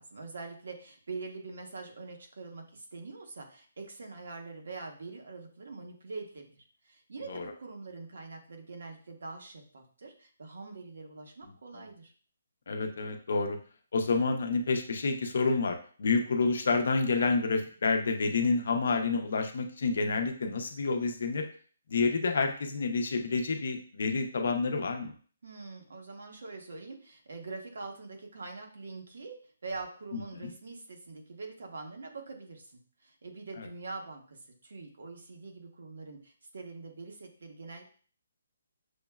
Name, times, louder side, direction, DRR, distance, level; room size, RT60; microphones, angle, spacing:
voice 1, 0.0-12.1 25.4-29.3 29.6-37.8, right 3 dB, 65° right, 3 dB, 0.9 m, -44 dB
voice 2, 12.7-13.6 13.9-21.4 21.9-25.1 30.1-30.5 33.6-33.7, left 4 dB, 55° left, 5 dB, 0.6 m, -29 dB
6.1 x 2.1 x 2.3 m, 0.43 s
hypercardioid pair, 170°, 0 cm